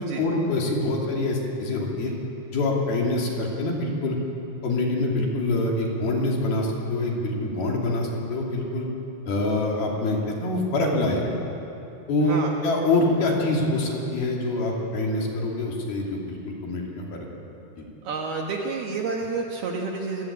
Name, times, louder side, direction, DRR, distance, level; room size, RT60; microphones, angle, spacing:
voice 1, 0.0-2.1 2.5-4.2 4.6-8.9 9.3-11.4 12.1-16.4 16.6-17.3 17.8-17.9, left 2 dB, 55° left, -1 dB, 4.2 m, -25 dB
voice 2, 12.2-12.5 18.0-20.2, right 4 dB, 65° right, 0 dB, 2.8 m, -29 dB
28.0 x 16.0 x 8.7 m, 2.9 s
omnidirectional pair, 5.9 m